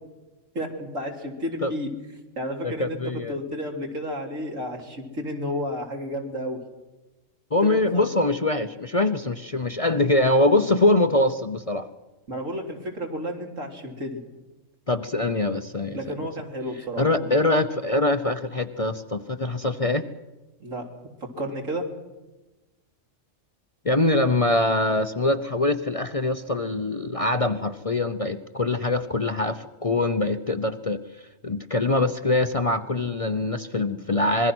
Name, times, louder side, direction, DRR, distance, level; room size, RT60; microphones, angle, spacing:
voice 1, 0.5-1.9 2.4-3.0 3.3-6.6 7.6-8.0 12.3-14.2 15.9-17.3 20.6-20.9 21.2-21.9, equal, 80° right, 1 dB, 3.8 m, -32 dB
voice 2, 2.6-3.4 7.5-11.9 14.9-16.1 17.0-20.0 23.8-31.0 31.4-34.5, left 2 dB, 30° left, 9 dB, 0.7 m, -23 dB
25.5 x 21.5 x 6.2 m, 1.1 s
omnidirectional pair, 1.3 m